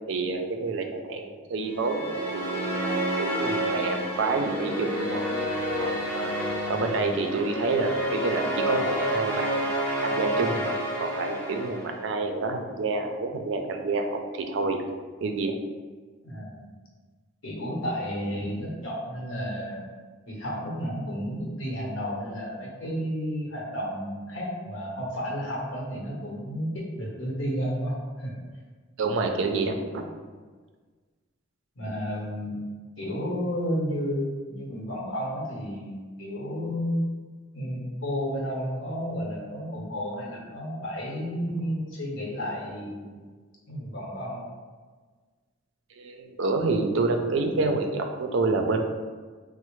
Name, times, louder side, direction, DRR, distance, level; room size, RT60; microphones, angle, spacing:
voice 1, 0.1-5.2 5.8-14.8 15.2-15.5 29.0-30.1 46.0-48.9, right 3 dB, 70° right, 4 dB, 0.4 m, -28 dB
sound 1, 1.7-12.1, equal, 10° left, 0.6 m, -29 dB
voice 2, 16.2-16.7 17.4-19.8 20.3-28.4 31.8-32.6 33.0-37.0 37.5-43.3 43.7-44.4, equal, 75° left, -3 dB, 0.9 m, -32 dB
4.1 x 2.0 x 3.0 m, 1.4 s
head